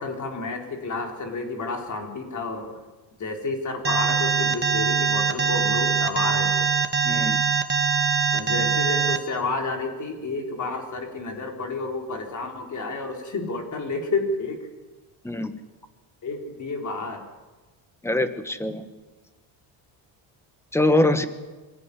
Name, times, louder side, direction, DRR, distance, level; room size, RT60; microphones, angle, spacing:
voice 1, 0.0-2.8 3.2-6.7 8.3-14.7 16.2-17.3, left 3 dB, 35° left, 3 dB, 4.1 m, -30 dB
Alarm, 3.8-9.2, right 6 dB, 20° right, 1.7 m, -22 dB
voice 2, 7.0-7.4 15.2-15.5 18.0-18.9 20.7-21.3, left 1 dB, 5° left, 10 dB, 1.4 m, -23 dB
24.0 x 17.5 x 9.9 m, 1.2 s
cardioid pair, 150°, 48 cm